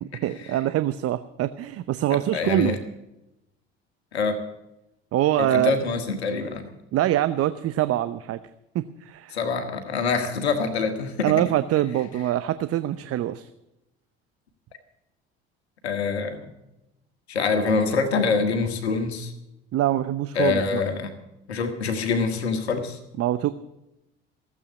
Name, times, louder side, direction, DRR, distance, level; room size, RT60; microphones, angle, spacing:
voice 1, 0.0-2.8 5.1-5.7 6.9-8.4 8.7-9.4 11.2-13.5 19.7-20.8 23.2-23.5, right 13 dB, 50° right, 13 dB, 0.8 m, -24 dB
voice 2, 2.3-2.8 4.1-4.4 5.4-6.7 9.3-11.3 15.8-16.5 17.3-19.3 20.4-21.1 21.5-23.0, left 4 dB, 85° left, 7 dB, 1.7 m, -25 dB
16.0 x 8.4 x 8.2 m, 0.90 s
hypercardioid pair, 60°, 31 cm